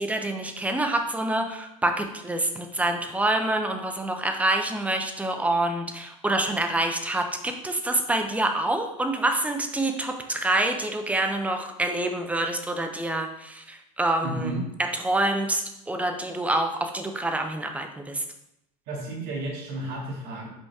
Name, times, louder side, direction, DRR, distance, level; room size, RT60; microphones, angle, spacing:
voice 1, 0.0-14.5 14.8-18.2, right 2 dB, 10° right, 5 dB, 0.5 m, -26 dB
voice 2, 14.2-14.6 18.9-20.5, right 2 dB, 60° right, -3 dB, 2.2 m, -32 dB
5.3 x 5.0 x 3.5 m, 0.83 s
supercardioid pair, 140°, 18 cm